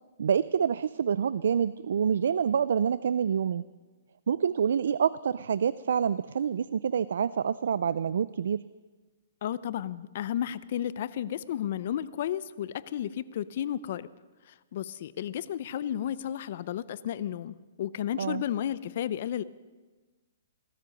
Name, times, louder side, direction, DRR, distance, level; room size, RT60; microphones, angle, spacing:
voice 1, 0.2-3.7 4.3-8.6 18.2-18.4, right 7 dB, 75° right, 17 dB, 0.4 m, -27 dB
voice 2, 9.4-14.1 14.7-19.4, left 10 dB, 50° left, 17 dB, 0.5 m, -33 dB
17.5 x 13.0 x 5.3 m, 1.3 s
hypercardioid pair, 155°, 0 cm